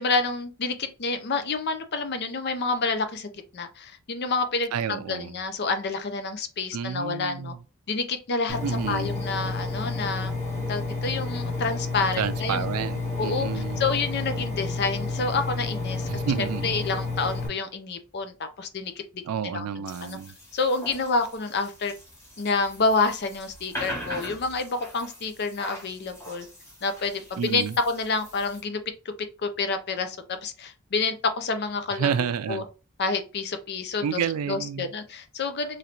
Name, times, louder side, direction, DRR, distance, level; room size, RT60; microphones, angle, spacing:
voice 1, 0.0-7.5 7.9-8.6 8.9-10.3 10.7-12.7 13.2-16.1 16.6-18.9 19.4-19.7 20.0-20.2 20.5-21.9 22.4-26.5 26.8-28.8 29.1-29.2 29.4-32.6 33.0-34.2 34.5-35.8, left 4 dB, 50° left, 0.5 m, -28 dB
voice 2, 4.7-5.3 6.7-7.6 8.6-9.1 12.2-13.8 16.1-16.7 19.2-20.3 27.4-27.8 32.0-32.6 34.0-34.9, right 7 dB, 85° right, 0.4 m, -30 dB
Engine, 8.5-17.5, left 3 dB, 35° left, 1.0 m, -30 dB
sound 1, 19.9-28.6, equal, 15° left, 1.3 m, -42 dB
3.1 x 2.9 x 2.5 m
head